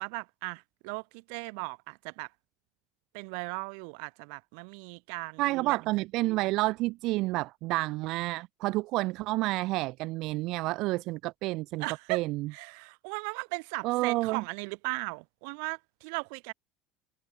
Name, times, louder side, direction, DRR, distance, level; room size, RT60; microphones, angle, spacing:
voice 1, 0.0-2.3 3.1-5.8 11.8-12.2 12.5-16.5, right 40 dB or more, 65° right, 0.8 m, -37 dB
voice 2, 5.4-12.5 13.8-14.4, right 20 dB, 50° right, 0.3 m, -29 dB
cardioid pair, 165°, 0 cm